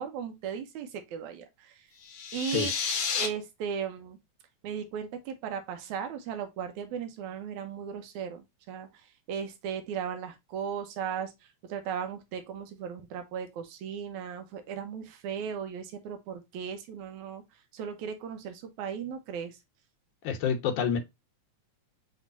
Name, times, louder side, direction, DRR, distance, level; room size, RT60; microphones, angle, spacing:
voice 1, 0.0-1.8 2.3-2.7 3.1-4.2 4.6-8.9 9.3-11.3 11.6-17.4 17.7-19.6, right 7 dB, 80° right, 2.3 m, -36 dB
sound 1, 2.0-3.3, left 6 dB, 60° left, 1.8 m, -31 dB
voice 2, 20.2-21.0, left 7 dB, 90° left, 2.5 m, -27 dB
6.4 x 3.1 x 2.6 m
omnidirectional pair, 3.4 m